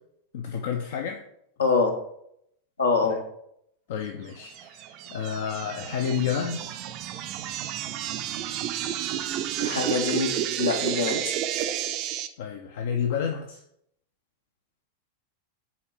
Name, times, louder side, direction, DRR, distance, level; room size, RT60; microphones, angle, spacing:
voice 1, 0.3-1.2 3.9-6.7 12.4-13.6, left 7 dB, 55° left, 4 dB, 0.5 m, -30 dB
voice 2, 1.6-1.9 2.8-3.2 9.6-11.3, left 4 dB, 70° left, 3 dB, 1.0 m, -24 dB
sound 1, 4.5-12.3, right 11 dB, 40° right, 0.4 m, -31 dB
5.6 x 4.0 x 4.9 m, 0.74 s
figure-of-eight pair, 90°, 0 cm